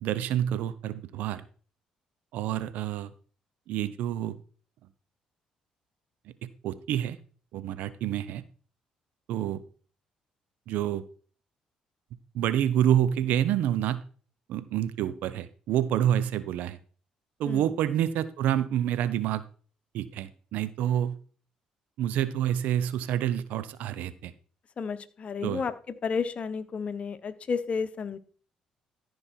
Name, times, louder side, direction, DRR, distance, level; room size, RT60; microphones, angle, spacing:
voice 1, 0.0-1.4 2.3-3.1 3.7-4.4 6.4-7.2 7.5-8.4 9.3-9.6 10.7-11.0 12.3-14.0 14.5-16.8 17.4-19.4 19.9-21.2 22.0-24.3 25.4-25.6, right 11 dB, 75° right, 15 dB, 0.8 m, -28 dB
voice 2, 24.8-25.7 26.0-28.2, left 5 dB, 50° left, 12 dB, 1.0 m, -31 dB
13.5 x 5.3 x 4.6 m, 0.41 s
hypercardioid pair, 55°, 3 cm